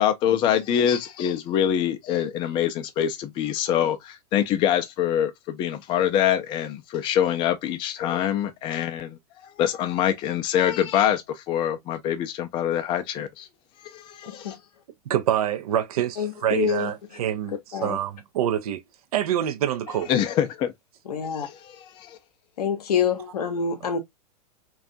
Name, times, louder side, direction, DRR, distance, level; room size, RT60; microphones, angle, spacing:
voice 1, 0.0-13.5 13.8-14.6 20.1-20.7 21.3-22.2, left 10 dB, 25° left, 0.3 m, -25 dB
voice 2, 14.3-14.6 16.2-16.9 17.7-18.0 21.1-21.5 22.6-24.0, left 7 dB, 70° left, 0.6 m, -26 dB
voice 3, 15.1-18.8 19.1-20.1, right 11 dB, 65° right, 0.4 m, -26 dB
2.4 x 2.3 x 2.4 m
figure-of-eight pair, 95°, 20 cm